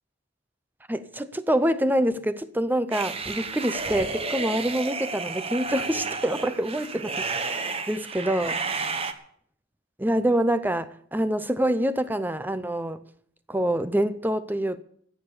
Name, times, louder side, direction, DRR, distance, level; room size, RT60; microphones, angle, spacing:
voice 1, 0.9-8.6 10.0-13.0 13.5-14.8, right 1 dB, 10° right, 0.5 m, -26 dB
sound 1, 2.9-9.1, right 4 dB, 25° right, 1.0 m, -31 dB
15.0 x 6.9 x 9.8 m
head